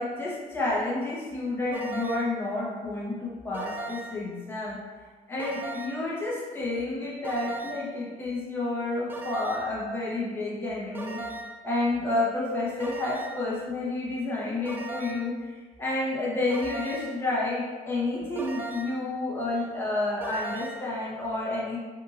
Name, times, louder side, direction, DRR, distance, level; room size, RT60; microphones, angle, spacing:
voice 1, 0.0-4.8 5.3-11.2 11.6-21.8, left 2 dB, 15° left, -7 dB, 0.9 m, -30 dB
sound 1, 1.7-2.4 3.5-4.3 5.4-6.1 7.2-8.0 9.1-9.8 10.9-11.7 12.8-13.5 14.7-15.4 16.5-17.2 18.4-19.1 20.2-20.9, right 2 dB, 10° right, 0.3 m, -38 dB
2.8 x 2.6 x 3.8 m, 1.4 s
cardioid pair, 110°, 17 cm